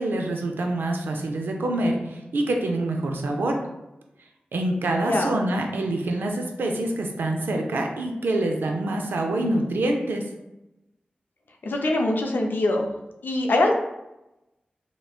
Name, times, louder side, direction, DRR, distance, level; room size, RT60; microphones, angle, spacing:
voice 1, 0.0-3.6 4.5-10.2, right 1 dB, 90° right, 2 dB, 0.3 m, -26 dB
voice 2, 11.6-12.9 13.2-13.7, left 2 dB, 75° left, 2 dB, 0.4 m, -23 dB
2.9 x 2.1 x 2.3 m, 0.93 s
cardioid pair, 40°, 3 cm